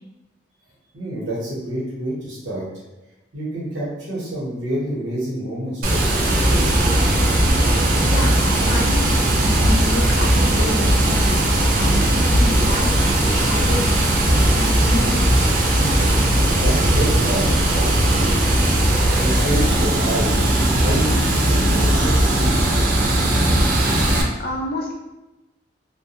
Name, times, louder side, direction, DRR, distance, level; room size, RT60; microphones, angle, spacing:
voice 1, 0.9-2.6 3.3-6.1 6.5-6.7 16.2-18.6 19.2-20.3 20.8-23.1, right 1 dB, 70° right, -6 dB, 1.0 m, -28 dB
Water, 5.8-24.2, right 1 dB, 45° right, 0.4 m, -18 dB
voice 2, 8.1-11.4 11.7-12.9 13.2-15.2 24.4-24.9, left 1 dB, 50° left, -1 dB, 0.4 m, -28 dB
2.2 x 2.2 x 2.8 m, 1.0 s
head